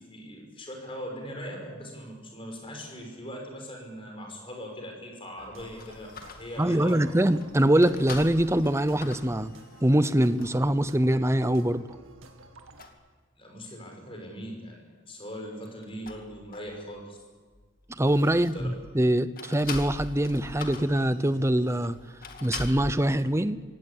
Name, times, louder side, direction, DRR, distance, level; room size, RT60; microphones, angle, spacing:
voice 1, 0.0-6.9 13.4-17.2 18.3-18.7, equal, 25° left, 1 dB, 5.8 m, -40 dB
sound 1, 5.4-12.9, right 3 dB, 90° right, 2.2 m, -52 dB
sound 2, 5.6-10.7 11.3-11.4 12.0-12.4 12.8-13.0 15.5-17.0 17.3-18.8 19.4-22.9, left 3 dB, 45° left, 2.3 m, -43 dB
voice 2, 6.6-9.5 9.8-11.9 17.9-22.0 22.4-23.6, right 1 dB, 15° right, 13 dB, 0.7 m, -24 dB
24.5 x 17.5 x 8.6 m, 1.5 s
head